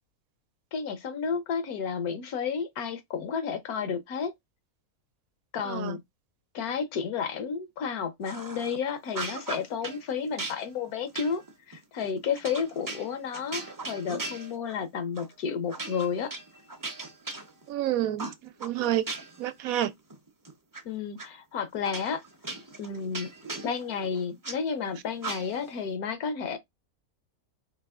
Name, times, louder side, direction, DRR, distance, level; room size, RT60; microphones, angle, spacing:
voice 1, 0.7-4.3 5.5-6.0 6.5-11.4 11.7-16.3 20.8-22.2 22.8-23.3 23.6-26.6, left 6 dB, 80° left, 1.4 m, -31 dB
sound 1, 8.2-8.8 9.1-10.0 10.4-14.8 15.1-15.3 15.7-17.8 18.2-19.5 19.8-20.8 21.2-21.3 21.8-24.6 25.2-25.7, right 3 dB, 25° right, 0.4 m, -38 dB
voice 2, 17.7-19.0 19.4-19.9, right 12 dB, 75° right, 1.0 m, -29 dB
4.6 x 2.9 x 3.6 m
omnidirectional pair, 1.6 m